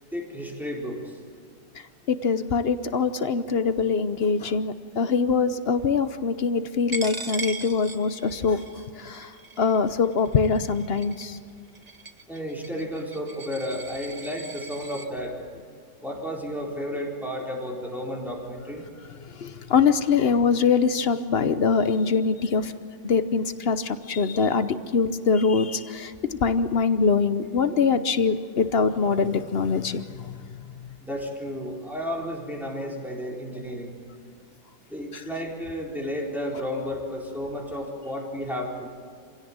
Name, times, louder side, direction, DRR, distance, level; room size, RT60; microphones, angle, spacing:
voice 1, 0.1-1.2 12.3-15.5 16.0-18.8 31.0-33.9 34.9-38.9, equal, ahead, -2 dB, 4.2 m, -32 dB
voice 2, 2.1-8.6 9.0-9.3 9.6-11.4 19.4-22.7 23.0-30.3, left 5 dB, 50° left, 11 dB, 0.7 m, -23 dB
Coin (dropping), 6.9-15.1, right 3 dB, 30° right, 0.8 m, -39 dB
26.5 x 17.0 x 8.8 m, 2.2 s
omnidirectional pair, 2.0 m